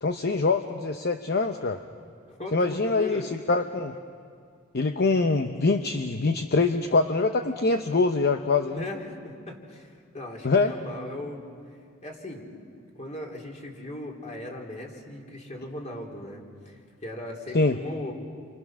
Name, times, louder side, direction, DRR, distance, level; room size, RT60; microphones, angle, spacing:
voice 1, 0.0-1.8 2.5-4.0 4.7-8.8 10.4-10.7 17.5-17.8, left 3 dB, 50° left, 7 dB, 0.8 m, -24 dB
voice 2, 2.3-3.3 8.7-11.4 12.0-12.5 13.0-18.1, left 1 dB, 35° left, 0 dB, 3.3 m, -38 dB
29.5 x 25.0 x 6.2 m, 2.1 s
head